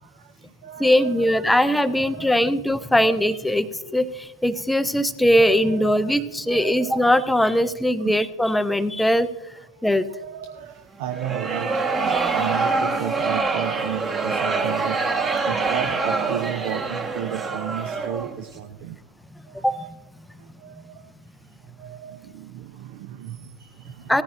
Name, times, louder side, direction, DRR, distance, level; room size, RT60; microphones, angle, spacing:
voice 1, 0.0-1.5 1.8-2.5 2.9-3.3 4.9-5.0 5.4-7.1 7.5-8.2 9.9-19.0 19.5-19.9 20.4-21.1 21.8-24.2, right 10 dB, 50° right, 7 dB, 0.7 m, -35 dB
voice 2, 0.8-3.7 3.9-4.1 4.4-9.3 9.8-10.1 12.1-12.3 19.6-19.7 24.1-24.2, equal, 5° left, 13 dB, 0.6 m, -20 dB
sound 1, 11.1-18.4, right 4 dB, 20° right, 1.4 m, -25 dB
18.0 x 14.5 x 2.6 m, 1.0 s
figure-of-eight pair, 90°, 0 cm